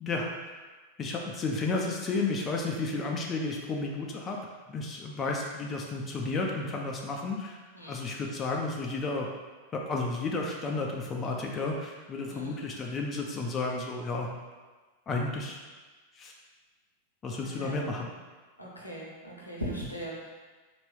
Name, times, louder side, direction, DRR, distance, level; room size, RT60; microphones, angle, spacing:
voice 1, 0.0-0.6 1.0-4.4 4.7-7.6 7.9-9.3 9.7-14.3 15.1-15.6 16.1-16.3 17.2-18.1, left 3 dB, 25° left, 0 dB, 0.5 m, -32 dB
voice 2, 7.7-8.0 12.3-12.6 17.4-17.8 18.6-20.3, right 1 dB, 85° left, -4 dB, 0.9 m, -39 dB
4.3 x 2.5 x 3.3 m, 1.3 s
figure-of-eight pair, 90°, 0 cm